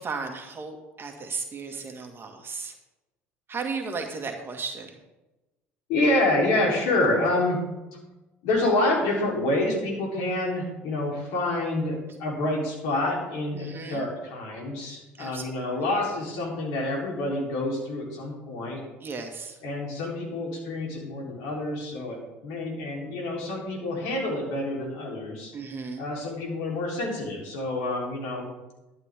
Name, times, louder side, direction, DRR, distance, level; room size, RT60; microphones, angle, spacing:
voice 1, 0.0-2.7 3.5-5.0 13.5-14.0 15.2-15.5 19.0-19.6 25.5-26.0, right 4 dB, 35° right, 3 dB, 2.1 m, -35 dB
voice 2, 5.9-7.6 8.4-18.8 19.6-25.5 26.0-28.4, left 2 dB, 70° left, -1 dB, 3.8 m, -27 dB
12.0 x 11.5 x 3.7 m, 1.0 s
hypercardioid pair, 70°, 7 cm